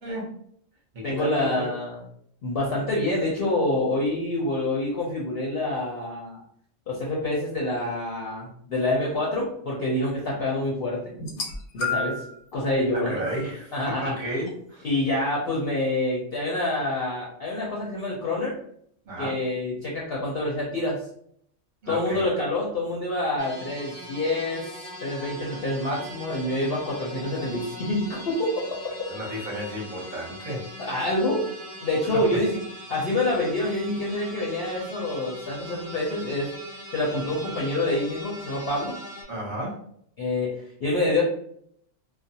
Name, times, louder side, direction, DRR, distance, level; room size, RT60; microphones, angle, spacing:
voice 1, 0.0-0.3 0.9-1.7 12.9-14.9 19.0-19.4 21.8-22.3 29.1-30.6 39.3-39.8, right 1 dB, 40° right, -3 dB, 0.9 m, -32 dB
voice 2, 1.0-2.0 2.4-6.4 6.9-11.0 11.7-12.2 12.5-13.2 13.7-14.1 14.8-18.5 19.2-21.0 21.9-24.7 25.0-28.8 30.8-31.4 31.8-32.6 32.9-36.5 36.9-38.9 40.2-40.5 40.8-41.2, left 2 dB, 55° left, -4 dB, 0.7 m, -27 dB
sound 1, 11.2-12.3 13.2-13.4 14.5-14.6, left 3 dB, 90° left, 1.0 m, -30 dB
sound 2, 23.4-39.2, equal, 15° left, 0.7 m, -40 dB
2.4 x 2.1 x 2.7 m, 0.67 s
omnidirectional pair, 1.4 m